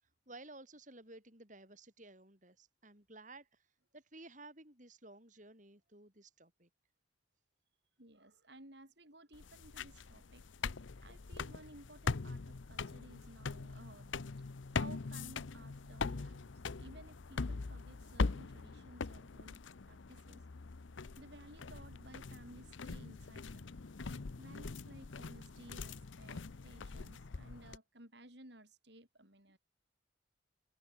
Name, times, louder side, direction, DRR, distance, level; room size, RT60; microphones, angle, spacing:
voice 1, 0.3-3.7 3.9-6.7, right 2 dB, 40° right, 6.5 m, -55 dB
voice 2, 8.0-10.7 11.0-14.5 14.7-20.4 21.2-23.9 24.4-29.6, right 1 dB, 60° right, 7.1 m, -57 dB
sound 1, 9.3-27.8, left 4 dB, 75° left, 0.7 m, -42 dB
head